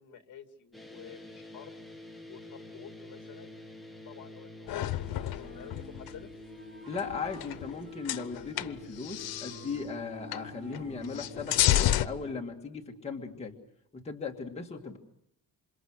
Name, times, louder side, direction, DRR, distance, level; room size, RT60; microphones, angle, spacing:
voice 1, 0.0-1.8 2.3-3.6 4.0-6.3 14.8-14.9, left 8 dB, 55° left, 6 dB, 2.6 m, -50 dB
sound 1, 0.7-12.4, left 1 dB, ahead, 1.7 m, -48 dB
sound 2, 4.7-6.2 6.9-7.8 8.0-9.7 10.3-10.5 10.7-12.1, left 13 dB, 80° left, 1.0 m, -30 dB
Wind instrument woodwind instrument, 5.4-7.5 7.8-8.9 9.1-11.3, right 2 dB, 35° right, 3.0 m, -51 dB
voice 2, 6.9-13.5 13.9-15.0, left 5 dB, 15° left, 0 dB, 2.1 m, -38 dB
28.0 x 26.5 x 6.4 m, 0.77 s
cardioid pair, 170°, 36 cm